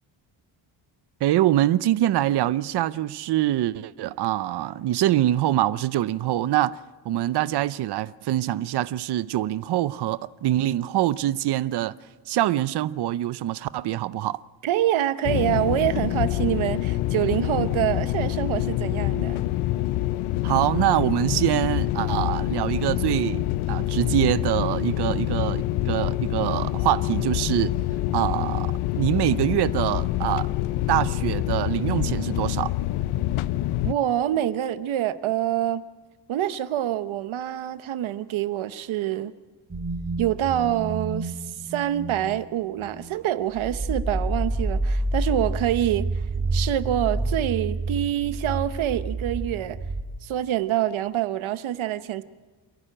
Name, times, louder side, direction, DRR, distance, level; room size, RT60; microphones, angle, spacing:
voice 1, 1.2-6.8 7.0-11.9 12.3-14.4 20.4-27.7 28.1-30.5 30.9-32.7, right 14 dB, 55° right, 0.6 m, -24 dB
voice 2, 14.6-19.4 33.8-35.8 36.3-39.3 40.2-46.1 46.5-49.8 50.2-52.2, right 12 dB, 75° right, 1.0 m, -26 dB
sound 1, 15.2-33.9, left 15 dB, 90° left, 0.6 m, -26 dB
sound 2, 39.7-42.4 42.8-43.1 43.5-50.0, right 2 dB, 20° right, 2.9 m, -29 dB
28.0 x 11.5 x 8.9 m
cardioid pair, 155°, 48 cm